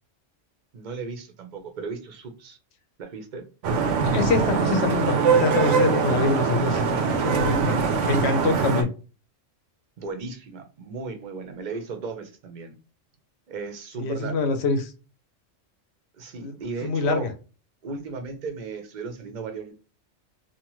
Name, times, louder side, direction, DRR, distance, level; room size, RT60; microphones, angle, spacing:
voice 1, 0.7-2.6 3.0-3.4 5.7-5.9 7.4-7.9 10.0-12.7 13.5-14.4 16.2-17.3 17.8-19.7, right 4 dB, 50° right, 0.6 m, -36 dB
Vehicle horn car horn honking / Traffic noise roadway noise, 3.6-8.8, right 5 dB, 75° right, 0.9 m, -22 dB
voice 2, 4.0-6.8 7.2-7.7 8.0-8.9 14.0-14.9 16.4-16.5 16.8-17.3, left 4 dB, 65° left, 0.8 m, -25 dB
2.8 x 2.1 x 3.0 m
omnidirectional pair, 1.3 m